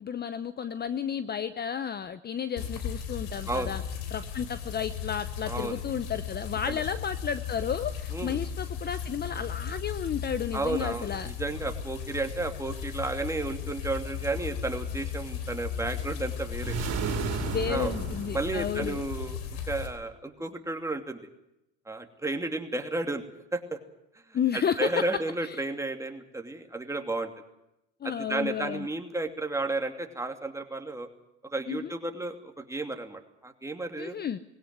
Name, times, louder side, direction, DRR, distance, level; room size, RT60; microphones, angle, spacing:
voice 1, 0.0-3.8 4.1-11.3 17.5-19.0 24.3-25.0 25.4-25.6 28.0-28.9 31.7-31.9 34.0-34.4, left 8 dB, 30° left, 13 dB, 0.9 m, -32 dB
sound 1, 2.6-19.9, left 7 dB, 75° left, 3.6 m, -36 dB
voice 2, 5.4-5.8 6.7-6.8 8.1-8.4 10.5-16.7 17.7-17.9 18.3-19.4 19.7-21.2 21.9-23.2 23.5-23.8 24.3-27.3 28.0-31.1 31.5-34.2, right 2 dB, 10° right, 4 dB, 2.8 m, -32 dB
sound 2, 16.6-19.2, right 7 dB, 50° right, 3.8 m, -33 dB
20.5 x 17.0 x 9.5 m, 0.87 s
supercardioid pair, 85°, 32 cm